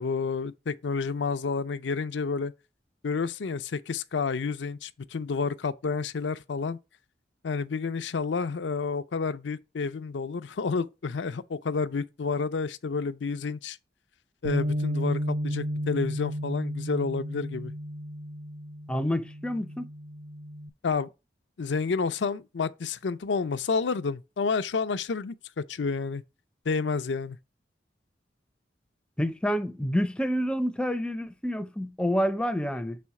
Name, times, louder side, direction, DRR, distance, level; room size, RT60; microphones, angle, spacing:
voice 1, 0.0-2.5 3.0-6.8 7.4-13.8 14.4-17.7 20.8-21.1 21.6-26.2 26.7-27.4, left 4 dB, 80° left, 0.5 m, -30 dB
Bass guitar, 14.4-20.7, equal, 70° right, 0.6 m, -33 dB
voice 2, 18.9-19.9 29.2-33.0, equal, 5° left, 0.5 m, -28 dB
6.2 x 4.2 x 4.7 m
head